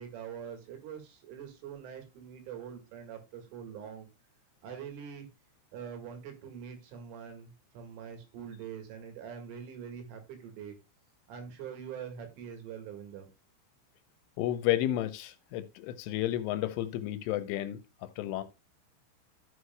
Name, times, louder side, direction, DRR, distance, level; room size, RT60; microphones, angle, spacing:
voice 1, 0.0-4.1 4.6-5.3 5.7-10.7 11.3-13.3, right 7 dB, 75° right, 4.3 m, -44 dB
voice 2, 14.4-18.4, left 13 dB, 80° left, 3.0 m, -32 dB
15.0 x 6.4 x 2.2 m
omnidirectional pair, 5.8 m